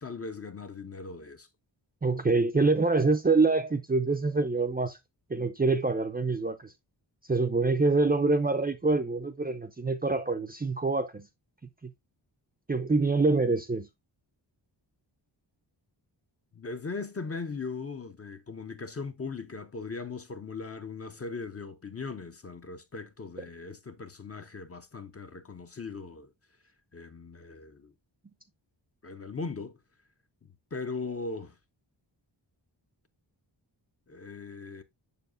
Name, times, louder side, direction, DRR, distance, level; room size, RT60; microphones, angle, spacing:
voice 1, 0.0-1.5 16.5-26.3 26.9-27.9 29.0-29.8 30.7-31.6 34.1-34.8, left 4 dB, 30° left, 0.6 m, -39 dB
voice 2, 2.0-5.0 5.3-6.7 7.3-11.3 11.8-11.9 12.7-13.9, right 3 dB, 20° right, 0.5 m, -25 dB
6.9 x 6.3 x 2.4 m
wide cardioid pair, 120°, 46 cm